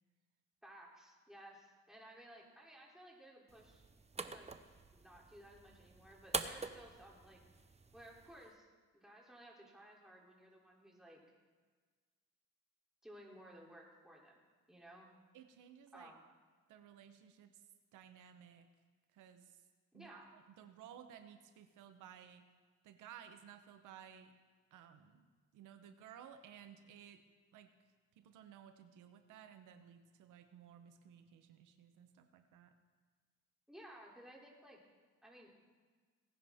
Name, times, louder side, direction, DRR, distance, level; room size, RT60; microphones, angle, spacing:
voice 1, 0.6-3.8 4.2-4.5 4.9-7.4 7.9-8.7 8.9-11.2 13.0-14.4 14.7-15.1 15.9-16.3 19.9-20.3 33.7-34.8 35.2-35.5, right 1 dB, ahead, -3 dB, 3.0 m, -57 dB
sound 1, 3.5-8.5, right 4 dB, 20° right, 0.7 m, -46 dB
voice 2, 15.3-16.1 16.7-17.6 17.9-18.7 19.1-19.6 19.9-22.4 22.8-24.3 24.7-27.2 27.5-27.7 28.2-32.7, right 9 dB, 85° right, 8 dB, 0.9 m, -57 dB
18.0 x 10.5 x 3.6 m, 1.5 s
cardioid pair, 90°, 30 cm